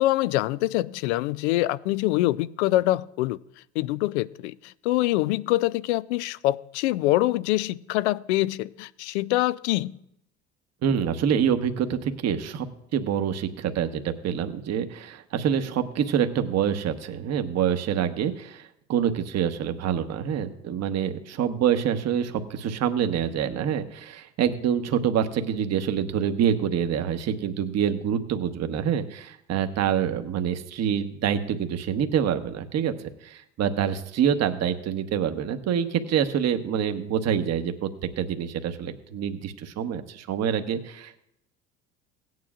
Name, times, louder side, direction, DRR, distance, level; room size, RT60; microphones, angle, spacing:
voice 1, 0.0-3.4 3.8-10.0, left 16 dB, 75° left, 19 dB, 0.5 m, -25 dB
voice 2, 10.8-12.7 12.9-32.9 33.2-37.9 38.2-41.2, right 8 dB, 50° right, 8 dB, 1.2 m, -26 dB
17.5 x 9.4 x 2.5 m, 0.78 s
hypercardioid pair, 70°, 35 cm